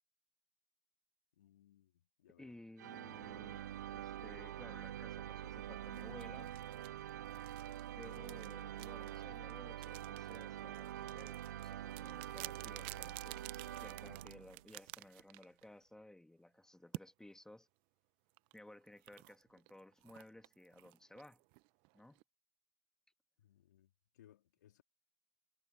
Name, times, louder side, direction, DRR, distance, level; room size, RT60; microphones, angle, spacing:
voice 1, 1.3-2.5 23.4-24.8, left 12 dB, 80° left, 2.9 m, -66 dB
voice 2, 2.4-6.5 8.0-17.7 18.5-21.4 21.9-22.2, left 1 dB, 5° left, 2.6 m, -57 dB
sound 1, 2.8-14.7, right 12 dB, 85° right, 0.6 m, -46 dB
sound 2, 5.9-15.8 16.9-17.1 18.4-22.2, right 27 dB, 60° right, 0.9 m, -53 dB
hypercardioid pair, 75°, 9 cm